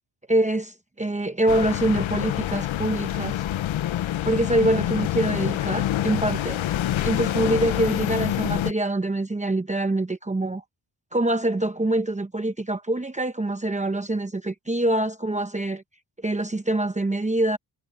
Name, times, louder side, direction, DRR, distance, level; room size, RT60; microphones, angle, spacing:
voice 1, 0.3-3.4 4.3-6.6 7.0-10.6 11.1-15.8 16.2-17.6, right 1 dB, 15° right, 0.9 m, -25 dB
sound 1, 1.5-8.7, left 12 dB, 85° left, 0.8 m, -26 dB
wide cardioid pair, 145°, 46 cm